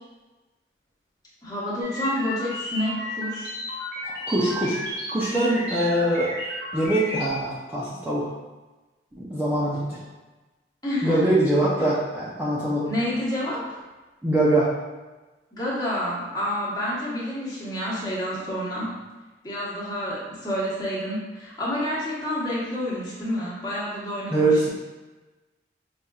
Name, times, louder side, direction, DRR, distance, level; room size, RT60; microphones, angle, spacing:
voice 1, 1.4-3.5 10.8-11.2 12.8-13.8 15.5-19.0 19.4-24.7, equal, 20° left, -8 dB, 1.1 m, -29 dB
sound 1, 1.8-7.3, left 1 dB, 65° right, 1.1 m, -33 dB
voice 2, 4.0-4.8 5.1-6.3 6.7-8.3 9.2-10.0 11.0-12.9 14.2-14.7 24.3-24.7, right 1 dB, 10° right, -9 dB, 0.5 m, -23 dB
5.4 x 2.5 x 2.3 m, 1.2 s
head